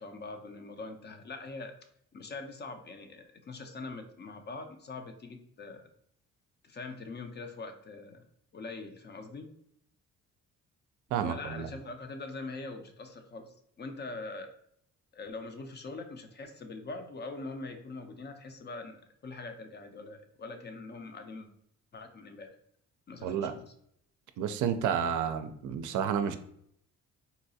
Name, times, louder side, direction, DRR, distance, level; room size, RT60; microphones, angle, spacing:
voice 1, 0.0-1.8 2.1-5.9 6.6-8.2 8.5-9.5 11.2-14.5 15.1-21.5 21.9-22.6 23.1-23.7, left 3 dB, 35° left, 6 dB, 0.5 m, -43 dB
voice 2, 11.1-11.7 23.2-23.5 24.4-26.4, right 8 dB, 75° right, 9 dB, 0.4 m, -30 dB
3.9 x 2.3 x 2.7 m, 0.70 s
cardioid pair, 90°, 30 cm